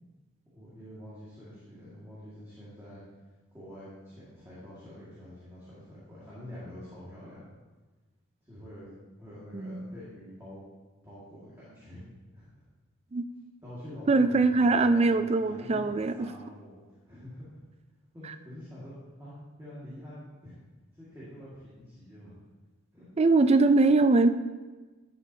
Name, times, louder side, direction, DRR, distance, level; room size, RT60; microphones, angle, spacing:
voice 1, 0.5-3.0 3.5-7.4 8.4-10.7 11.0-12.0 12.3-12.6 13.6-15.1 15.4-16.8 17.1-17.6 18.1-20.6 20.9-22.3 22.9-23.1, left 1 dB, 15° right, -10 dB, 2.0 m, -46 dB
voice 2, 14.1-16.1 23.2-24.3, right 3 dB, 30° right, 10 dB, 0.3 m, -22 dB
11.5 x 6.9 x 2.8 m, 1.3 s
head